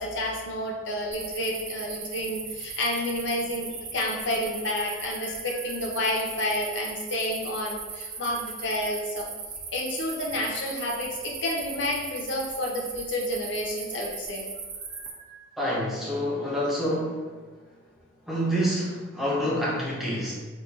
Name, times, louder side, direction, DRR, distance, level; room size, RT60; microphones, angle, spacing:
voice 1, 0.0-9.3 9.7-14.5 14.9-15.8, left 1 dB, 65° left, -1 dB, 0.6 m, -30 dB
sound 1, 1.1-15.1, right 5 dB, 40° right, 0.3 m, -38 dB
voice 2, 15.6-17.3 18.3-20.3, equal, ahead, -7 dB, 0.6 m, -27 dB
4.1 x 2.3 x 2.3 m, 1.4 s
head